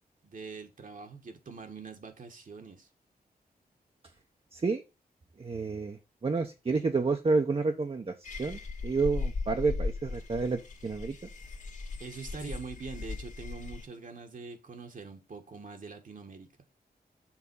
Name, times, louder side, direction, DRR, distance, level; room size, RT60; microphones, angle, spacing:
voice 1, 0.2-2.9 12.0-16.5, right 4 dB, 55° right, 1.5 m, -44 dB
voice 2, 4.5-4.8 5.4-11.2, right 4 dB, 35° right, 0.9 m, -30 dB
sound 1, 8.2-13.9, left 4 dB, 50° left, 1.8 m, -38 dB
7.2 x 3.8 x 5.4 m
wide cardioid pair, 85°, 16 cm